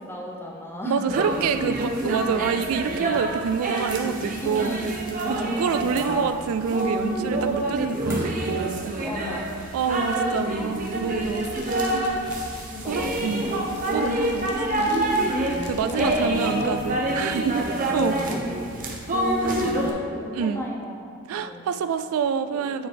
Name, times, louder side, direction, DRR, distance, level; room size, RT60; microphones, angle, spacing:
voice 1, 0.0-1.2 4.4-4.8 5.2-5.8 9.0-9.4 10.1-10.7 12.7-13.6 14.4-14.5 15.8-16.8 18.1-18.6 19.4-21.6 22.5-22.7, equal, 10° left, -2 dB, 0.7 m, -35 dB
voice 2, 0.8-4.8 5.3-8.9 9.7-11.5 11.9-12.2 12.9-13.5 13.9-14.9 15.6-18.2 19.4-19.6 20.3-20.6 21.3-22.9, right 6 dB, 85° right, 11 dB, 0.3 m, -27 dB
sound 1, 1.1-19.9, right 1 dB, 40° right, 0.7 m, -27 dB
sound 2, 5.9-6.7 8.1-8.6, right 1 dB, 10° right, 1.4 m, -42 dB
Fire, 11.2-16.3, left 3 dB, 55° left, 0.6 m, -45 dB
9.2 x 4.0 x 3.3 m, 2.3 s
head